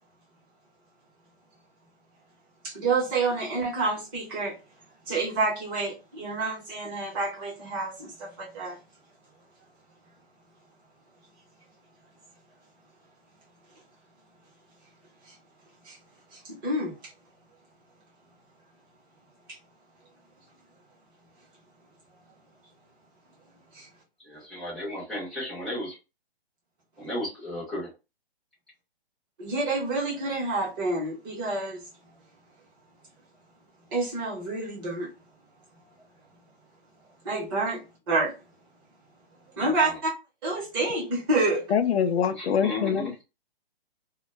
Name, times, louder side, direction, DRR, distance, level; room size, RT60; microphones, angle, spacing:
voice 1, 2.6-4.6 5.1-8.8 15.8-16.0 16.3-16.9 23.7-23.9 29.4-31.8 33.9-35.1 37.2-38.3 39.6-40.1 40.4-41.6, right 3 dB, 20° right, 0.9 m, -28 dB
voice 2, 24.3-26.0 27.0-27.9 39.6-39.9 42.4-43.1, left 1 dB, ahead, 0.6 m, -34 dB
voice 3, 41.7-43.2, left 7 dB, 85° left, 0.5 m, -24 dB
2.2 x 2.1 x 3.1 m
hypercardioid pair, 155°, 31 cm